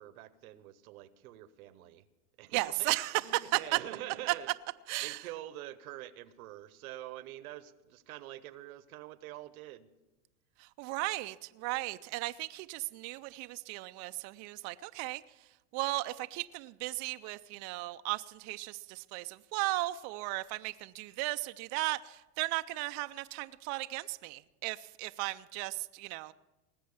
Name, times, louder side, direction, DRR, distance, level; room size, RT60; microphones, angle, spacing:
voice 1, 0.0-2.1 2.4-4.5 5.0-9.9, right 14 dB, 80° right, 0.9 m, -46 dB
voice 2, 2.5-3.2 3.5-3.8 4.9-5.2 10.6-15.2 15.7-26.3, right 20 dB, 40° right, 0.4 m, -36 dB
19.0 x 7.5 x 7.0 m
supercardioid pair, 120°, 43 cm